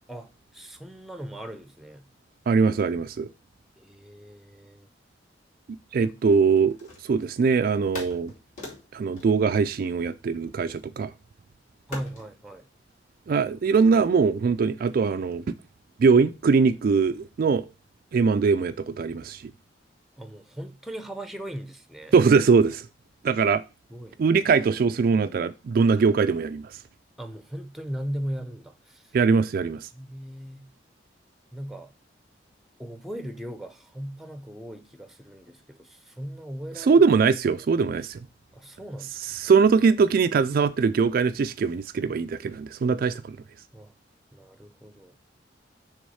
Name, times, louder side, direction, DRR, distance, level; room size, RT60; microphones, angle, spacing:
voice 1, 0.1-2.1 3.8-4.9 6.0-6.1 11.9-12.7 20.2-22.1 23.9-24.2 27.2-29.1 29.9-30.7 31.5-31.9 32.8-37.0 38.5-39.3 43.7-43.9 44.3-45.1, equal, ahead, 0.7 m, -38 dB
voice 2, 2.5-3.3 5.9-8.3 8.9-11.1 13.3-15.4 16.0-17.7 18.1-19.4 22.1-22.9 23.2-23.6 24.2-26.8 29.1-29.9 36.8-38.2 39.2-43.4, right 5 dB, 50° right, 0.3 m, -22 dB
sound 1, 6.3-7.4 7.9-10.4 11.9-12.3, left 2 dB, 45° left, 2.8 m, -42 dB
6.3 x 3.5 x 5.5 m
head